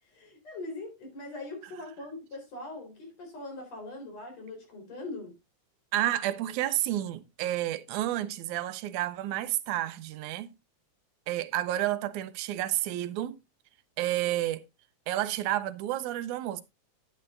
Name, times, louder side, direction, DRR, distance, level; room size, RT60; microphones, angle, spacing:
voice 1, 0.0-5.3, left 2 dB, 60° left, 5.2 m, -41 dB
voice 2, 5.9-10.5 11.3-13.4 14.0-14.6 15.1-16.6, right 13 dB, 85° right, 2.2 m, -30 dB
11.0 x 9.8 x 2.5 m
omnidirectional pair, 3.4 m